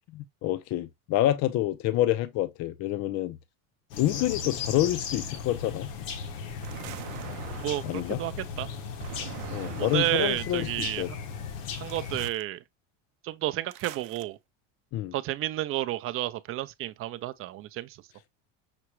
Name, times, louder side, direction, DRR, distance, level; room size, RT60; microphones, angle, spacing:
voice 1, 0.1-3.4 4.0-5.9 7.8-8.2 9.5-11.1 14.9-15.1, left 14 dB, 45° left, 0.4 m, -27 dB
sound 1, 3.9-12.3, left 6 dB, 85° left, 1.1 m, -37 dB
sound 2, 6.6-8.1 9.0-10.5 11.9-12.4 13.7-14.2, right 15 dB, 90° right, 0.6 m, -43 dB
voice 2, 7.6-8.3 8.6-8.7 9.8-11.2 11.8-12.6 13.2-14.4 15.1-18.0, right 14 dB, 40° right, 0.4 m, -31 dB
5.9 x 2.2 x 3.0 m
supercardioid pair, 120°, 38 cm